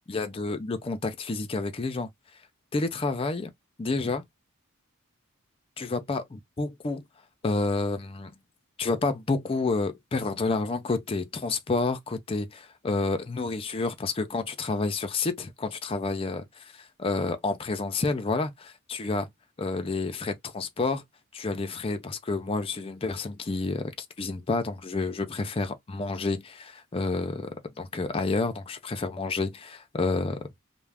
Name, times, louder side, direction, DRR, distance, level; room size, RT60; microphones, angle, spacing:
voice 1, 0.1-2.1 2.7-3.5 3.8-4.2 5.8-7.0 7.4-8.3 8.8-16.4 17.0-19.3 19.6-21.0 21.3-30.6, left 3 dB, 25° left, 0.4 m, -29 dB
2.3 x 2.1 x 3.3 m
head